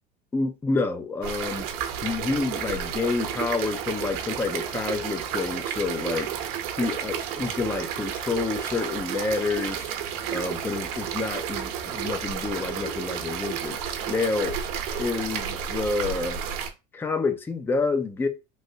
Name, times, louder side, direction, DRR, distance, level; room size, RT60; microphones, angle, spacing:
voice 1, 0.3-1.7 2.0-6.3 6.8-9.9 10.3-14.6 15.0-16.4 16.9-18.3, left 4 dB, 10° left, 0.4 m, -28 dB
sound 1, 1.2-16.7, right 8 dB, 75° right, 0.7 m, -32 dB
3.2 x 2.5 x 2.7 m
supercardioid pair, 120°, 19 cm